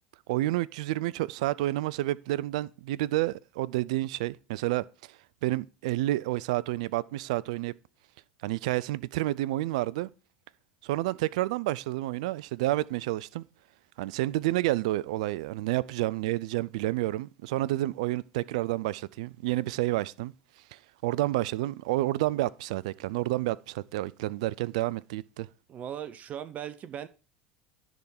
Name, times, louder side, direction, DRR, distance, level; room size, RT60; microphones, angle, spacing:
voice 1, 0.3-4.8 5.4-7.7 8.4-10.1 10.8-13.4 14.0-20.3 20.7-25.5, right 17 dB, 70° right, 0.4 m, -29 dB
voice 2, 25.7-27.1, right 10 dB, 40° right, 0.7 m, -38 dB
10.5 x 3.7 x 6.5 m
hypercardioid pair, 80°, 4 cm